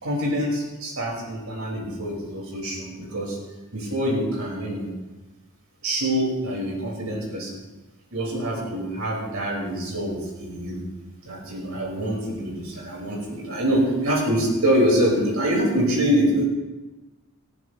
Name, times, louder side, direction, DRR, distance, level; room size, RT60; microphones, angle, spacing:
voice 1, 0.0-3.4 3.7-4.9 5.8-7.6 8.1-10.8 11.2-16.4, equal, 85° right, -3 dB, 5.6 m, -25 dB
19.0 x 14.0 x 3.4 m, 1.1 s
head